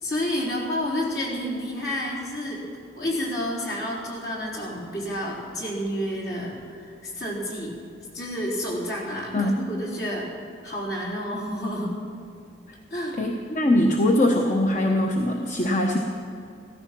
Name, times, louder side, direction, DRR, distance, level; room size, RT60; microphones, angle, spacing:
voice 1, 0.0-2.6 3.0-7.8 8.1-10.3 10.6-12.0 12.9-13.2, equal, 60° left, -3 dB, 4.3 m, -30 dB
voice 2, 13.2-16.0, left 1 dB, 40° left, 2 dB, 1.0 m, -22 dB
16.0 x 14.5 x 6.0 m, 2.5 s
head